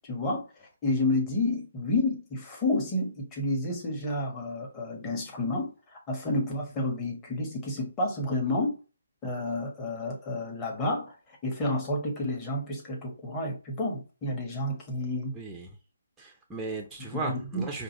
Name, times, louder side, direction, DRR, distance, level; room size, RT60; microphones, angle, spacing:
voice 1, 0.0-8.8 9.2-11.1 11.4-15.4 17.0-17.7, left 2 dB, 20° left, 1.4 m, -30 dB
voice 2, 15.3-15.8 16.2-17.8, right 3 dB, 5° right, 0.6 m, -36 dB
5.1 x 2.5 x 3.0 m
figure-of-eight pair, 145°, 0 cm